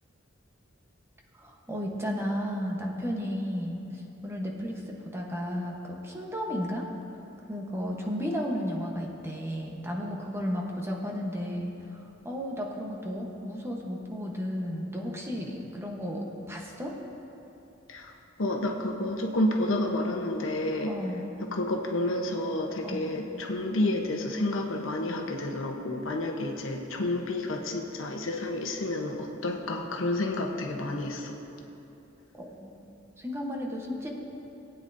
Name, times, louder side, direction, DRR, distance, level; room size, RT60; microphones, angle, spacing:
voice 1, 1.4-6.9 7.5-16.9 20.9-21.2 22.8-23.0 32.4-32.7 33.2-34.2, equal, 15° right, -1 dB, 1.0 m, -33 dB
voice 2, 18.4-20.9 21.4-31.4, left 1 dB, 85° left, 2 dB, 1.0 m, -30 dB
19.0 x 9.1 x 2.7 m, 3.0 s
head